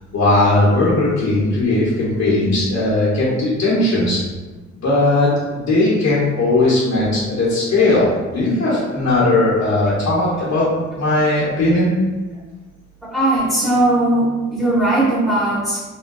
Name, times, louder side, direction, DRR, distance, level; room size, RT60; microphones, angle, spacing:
voice 1, 0.1-4.2 4.8-8.1 8.3-10.7 10.9-11.9, left 2 dB, 60° left, -7 dB, 0.9 m, -17 dB
voice 2, 13.1-15.9, right 1 dB, ahead, -9 dB, 1.5 m, -18 dB
3.5 x 2.1 x 2.3 m, 1.3 s
cardioid pair, 90°, 30 cm